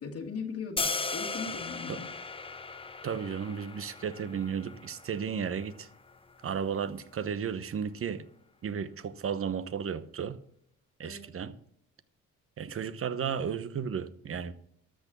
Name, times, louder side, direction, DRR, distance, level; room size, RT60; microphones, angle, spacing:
voice 1, 0.0-2.1 11.0-11.2, left 5 dB, 55° left, 1.8 m, -39 dB
sound 1, 0.8-6.9, left 3 dB, 20° left, 0.9 m, -38 dB
voice 2, 3.0-5.9 6.4-8.2 8.6-10.4 11.0-11.5 12.6-14.5, right 7 dB, 45° right, 1.0 m, -34 dB
13.0 x 6.3 x 6.8 m
cardioid pair, 90°, 30 cm